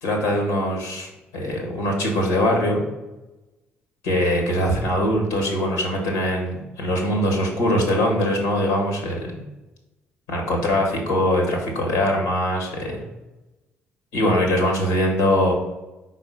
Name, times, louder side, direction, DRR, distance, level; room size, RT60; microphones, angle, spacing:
voice 1, 0.0-2.8 4.0-9.4 10.3-13.0 14.1-15.5, left 1 dB, 75° left, 2 dB, 1.5 m, -22 dB
4.7 x 4.2 x 5.3 m, 1.1 s
hypercardioid pair, 45°, 6 cm